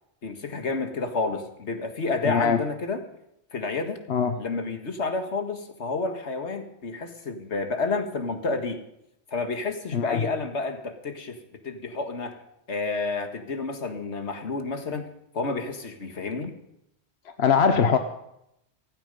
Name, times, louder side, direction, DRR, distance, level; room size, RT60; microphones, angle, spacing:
voice 1, 0.2-3.0 3.5-4.0 4.4-8.8 9.3-12.4 12.7-15.1 15.3-16.5, left 3 dB, 85° left, 6 dB, 2.0 m, -30 dB
voice 2, 2.2-2.6 4.1-4.4 9.9-10.2 17.4-18.0, left 6 dB, 70° left, 8 dB, 1.1 m, -21 dB
16.0 x 15.0 x 5.4 m, 0.80 s
omnidirectional pair, 1.1 m